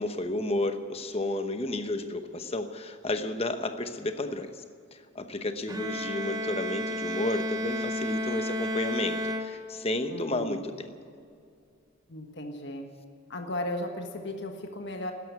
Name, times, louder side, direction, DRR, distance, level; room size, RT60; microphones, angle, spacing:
voice 1, 0.0-4.6 4.9-10.9, left 2 dB, 30° left, 8 dB, 0.9 m, -32 dB
Bowed string instrument, 5.7-10.1, left 1 dB, 15° right, 0.8 m, -32 dB
voice 2, 10.1-10.7 12.1-12.9 13.3-15.1, left 1 dB, 55° left, 4 dB, 1.5 m, -35 dB
13.0 x 10.5 x 9.5 m, 2.3 s
head